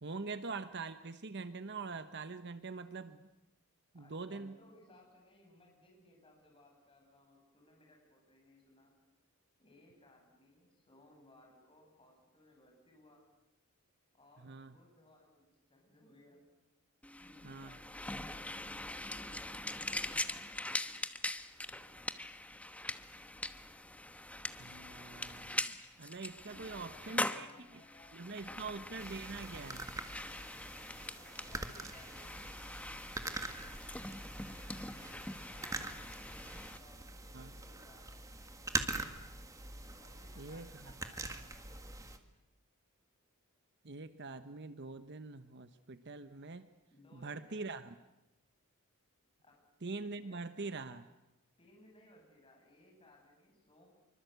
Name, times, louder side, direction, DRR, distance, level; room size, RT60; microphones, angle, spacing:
voice 1, 0.0-3.3 3.9-4.6 14.4-14.8 17.4-17.7 24.6-27.8 28.1-29.9 37.3-37.5 40.4-40.9 43.8-46.7 47.1-47.9 49.8-51.0, right 3 dB, 50° right, 11 dB, 0.9 m, -44 dB
voice 2, 3.9-8.9 9.6-13.2 14.1-16.5 17.1-20.9 26.5-28.6 30.9-32.5 34.4-36.0 36.5-38.2 39.9-41.8 46.9-47.9 49.4-49.6 50.1-50.8 51.6-53.9, left 1 dB, 25° left, 0 dB, 8.0 m, -63 dB
sound 1, 17.0-36.8, left 1 dB, 5° left, 1.0 m, -42 dB
sound 2, 29.0-42.2, right 2 dB, 15° right, 1.8 m, -44 dB
26.5 x 24.5 x 8.1 m, 0.97 s
head